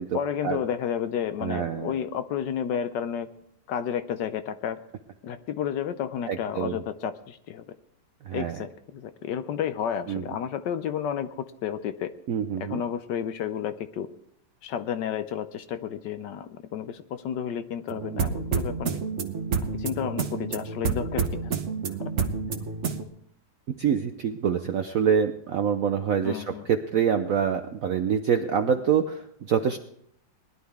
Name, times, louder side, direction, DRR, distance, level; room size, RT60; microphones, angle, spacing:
voice 1, 0.1-3.3 3.7-4.8 5.2-7.7 8.3-12.1 12.6-14.1 14.6-19.0 19.6-21.5 26.2-26.7, left 8 dB, 70° left, 11 dB, 1.2 m, -31 dB
voice 2, 1.4-1.9 6.3-6.8 8.3-8.6 10.1-10.2 12.3-12.8 18.1-18.3 23.8-29.8, right 7 dB, 70° right, 7 dB, 0.8 m, -26 dB
sound 1, 17.9-23.0, right 5 dB, 45° right, 1.0 m, -29 dB
19.5 x 11.5 x 3.5 m, 0.68 s
omnidirectional pair, 2.2 m